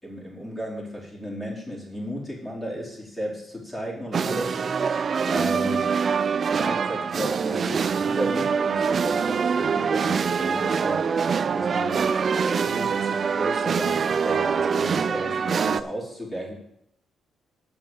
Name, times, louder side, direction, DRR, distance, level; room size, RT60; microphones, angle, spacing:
voice 1, 0.0-4.6 5.2-5.9 6.5-11.1 11.5-12.1 12.6-16.5, equal, 15° left, -4 dB, 4.3 m, -34 dB
sound 1, 4.1-15.8, right 6 dB, 45° right, 0.5 m, -24 dB
8.8 x 6.3 x 7.4 m, 0.75 s
cardioid pair, 90°, 0 cm